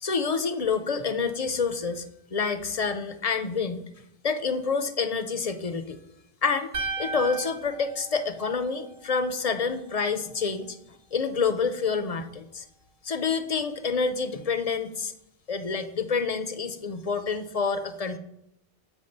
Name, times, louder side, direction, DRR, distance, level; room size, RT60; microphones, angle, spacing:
voice 1, 0.0-2.0 2.3-3.8 4.2-6.0 6.4-6.7 7.0-10.8 11.1-12.6 13.0-15.1 15.5-18.2, left 5 dB, 45° left, 10 dB, 0.5 m, -28 dB
sound 1, 6.7-9.0, right 3 dB, 65° right, 1.1 m, -35 dB
7.1 x 4.6 x 6.5 m, 0.79 s
omnidirectional pair, 1.1 m